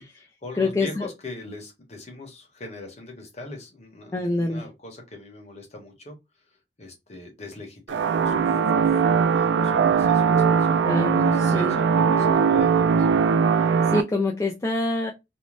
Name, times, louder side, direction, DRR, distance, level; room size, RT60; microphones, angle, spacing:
voice 1, 0.0-9.0 9.3-13.1, left 2 dB, 40° left, 0.9 m, -42 dB
voice 2, 0.6-1.1 4.1-4.6 10.9-11.8 13.8-15.1, left 2 dB, 15° left, 0.3 m, -25 dB
sound 1, 7.9-14.0, right 6 dB, 75° right, 0.3 m, -20 dB
2.6 x 2.1 x 3.1 m
head